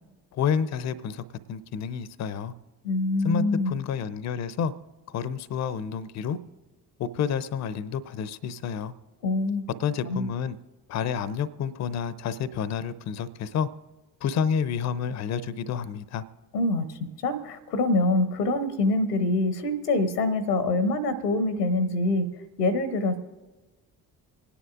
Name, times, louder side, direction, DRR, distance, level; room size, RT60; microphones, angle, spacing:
voice 1, 0.3-1.2 1.5-2.5 3.2-4.7 5.1-6.4 7.0-8.9 9.8-10.6 10.9-13.7 14.2-16.2, left 7 dB, 35° left, 0.6 m, -29 dB
voice 2, 2.8-3.7 9.2-9.6 10.0-10.3 16.5-16.8 17.2-22.3 22.6-23.2, left 2 dB, 85° left, 0.9 m, -25 dB
27.0 x 9.9 x 2.5 m
figure-of-eight pair, 40°, 46 cm